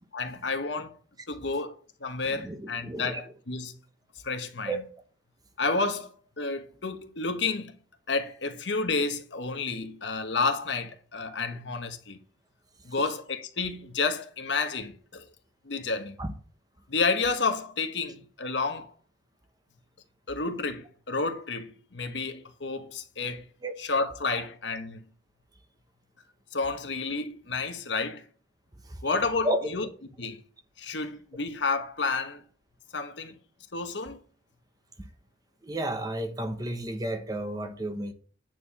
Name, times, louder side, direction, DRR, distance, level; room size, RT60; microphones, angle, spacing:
voice 1, 0.1-1.0 1.3-3.7 4.2-4.8 5.6-7.7 8.1-12.2 12.8-15.2 15.6-16.2 16.9-18.9 20.3-23.5 23.8-25.0 26.5-28.2 29.0-29.9 30.2-30.4 30.8-32.4 32.9-33.4 33.7-34.2, left 4 dB, 70° left, 1.2 m, -30 dB
voice 2, 2.2-3.2 4.7-4.8 16.2-16.3 23.6-23.7 28.9-29.1 29.4-29.7 35.0-35.1 35.6-38.1, right 1 dB, 20° right, 1.0 m, -32 dB
9.3 x 4.6 x 7.1 m
head